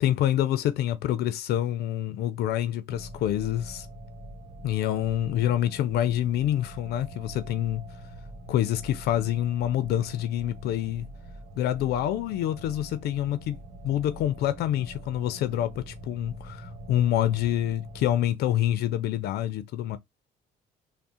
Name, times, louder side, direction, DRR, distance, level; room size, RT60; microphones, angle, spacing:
voice 1, 0.0-3.9 4.6-7.9 8.5-11.1 11.6-13.6 13.8-20.0, left 12 dB, 70° left, 0.4 m, -27 dB
sound 1, 2.9-18.2, right 1 dB, 55° right, 1.3 m, -44 dB
3.5 x 2.1 x 4.1 m
cardioid pair, 110°, 17 cm